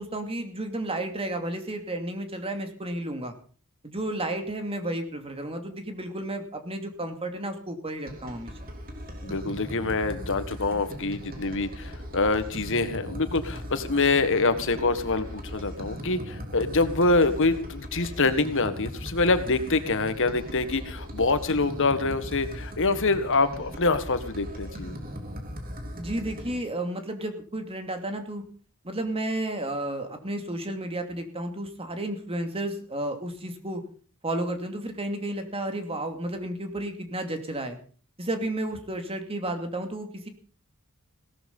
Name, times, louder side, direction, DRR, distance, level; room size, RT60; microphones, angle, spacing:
voice 1, 0.0-3.3 3.8-8.5 25.9-28.4 28.8-33.8 34.2-37.8 38.2-40.3, right 1 dB, 25° right, 6 dB, 2.7 m, -32 dB
sound 1, 8.1-26.6, equal, 40° right, 3.6 m, -38 dB
voice 2, 9.2-25.0, left 3 dB, 60° left, 11 dB, 1.7 m, -25 dB
17.5 x 13.0 x 5.5 m, 0.41 s
head